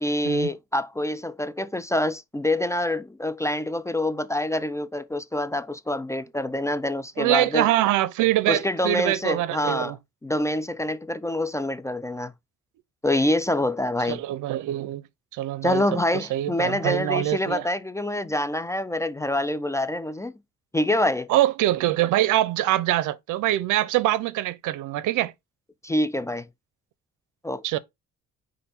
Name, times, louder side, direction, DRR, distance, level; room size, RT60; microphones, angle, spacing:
voice 1, 0.0-7.7 8.5-9.9 10.2-12.3 13.0-14.2 15.6-20.3 20.7-21.3 25.8-26.5 27.4-27.8, left 1 dB, 10° left, 0.3 m, -26 dB
voice 2, 7.2-10.0 14.1-15.0 15.3-15.8 16.1-17.7 21.3-25.3 27.6-27.8, right 14 dB, 85° right, 0.5 m, -24 dB
5.2 x 2.6 x 4.0 m
cardioid pair, 90°, 30 cm